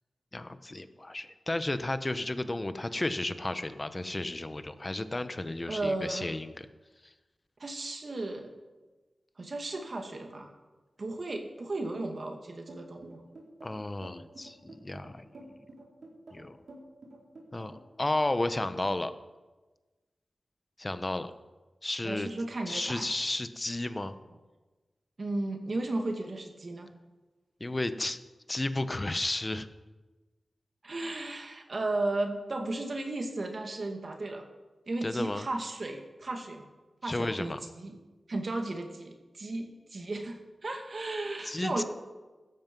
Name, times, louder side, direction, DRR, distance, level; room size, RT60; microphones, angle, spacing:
voice 1, 0.3-6.7 7.0-7.1 13.6-15.2 16.3-16.6 17.5-19.1 20.8-21.3 21.8-22.3 22.7-24.1 27.6-28.2 28.5-29.7 35.0-35.5 37.0-37.6 41.4-41.8, left 2 dB, 25° left, 11 dB, 0.9 m, -33 dB
voice 2, 5.7-6.3 7.6-8.5 9.4-10.5 11.0-13.2 22.0-23.0 25.2-26.9 30.8-34.4 34.9-36.6 37.0-37.9 38.3-41.8, right 2 dB, 50° right, 4 dB, 2.1 m, -34 dB
sound 1, 12.7-17.9, right 1 dB, 70° right, 4.5 m, -49 dB
17.0 x 13.5 x 5.4 m, 1.2 s
wide cardioid pair, 100°, 0 cm